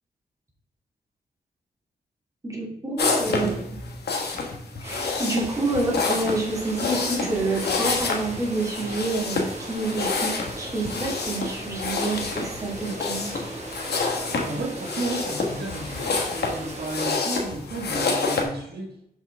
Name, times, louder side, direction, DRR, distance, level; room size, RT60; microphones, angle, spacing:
voice 1, 2.4-3.5 4.8-13.3, right 2 dB, 20° right, -3 dB, 2.3 m, -28 dB
sound 1, 3.0-18.4, left 4 dB, 85° left, 1.2 m, -28 dB
voice 2, 3.3-3.6 14.3-19.0, right 2 dB, 75° right, 0 dB, 1.4 m, -33 dB
sound 2, 4.8-17.1, right 1 dB, 40° right, 1.6 m, -38 dB
6.2 x 5.6 x 3.4 m, 0.76 s
wide cardioid pair, 90°, 17 cm